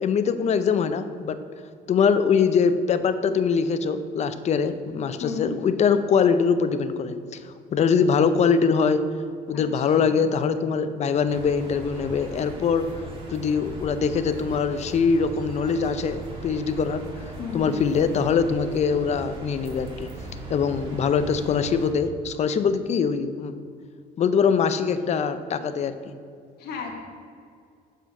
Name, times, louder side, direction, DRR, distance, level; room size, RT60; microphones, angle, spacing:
voice 1, 0.0-1.4 1.9-7.4 7.7-9.0 9.5-12.9 13.3-17.0 17.5-20.1 20.5-23.5 24.2-25.9, left 6 dB, 40° left, 11 dB, 0.5 m, -23 dB
voice 2, 5.2-5.5 9.5-10.1 17.4-17.7 26.6-26.9, left 5 dB, 75° left, 1 dB, 1.3 m, -34 dB
sound 1, 11.3-21.9, right 1 dB, 30° right, 1.8 m, -39 dB
7.1 x 4.5 x 6.0 m, 2.4 s
cardioid pair, 110°, 17 cm